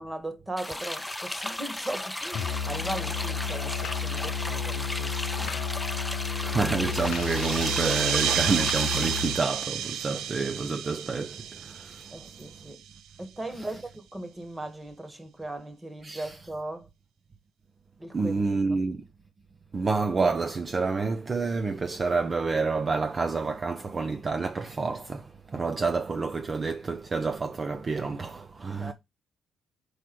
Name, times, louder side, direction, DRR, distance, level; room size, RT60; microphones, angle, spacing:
voice 1, 0.0-5.6 10.1-10.2 12.1-12.8 13.2-16.9 18.0-18.8 28.8-28.9, right 1 dB, 15° right, 1.7 m, -38 dB
sound 1, 0.6-9.4, left 1 dB, 10° left, 0.6 m, -35 dB
Musical instrument, 2.3-9.4, left 6 dB, 80° left, 0.6 m, -32 dB
voice 2, 6.4-12.1 16.0-16.3 18.1-19.0 19.7-28.9, right 4 dB, 35° right, 0.6 m, -29 dB
sound 2, 6.8-12.9, right 10 dB, 85° right, 0.6 m, -31 dB
4.8 x 4.7 x 6.0 m
cardioid pair, 90°, 0 cm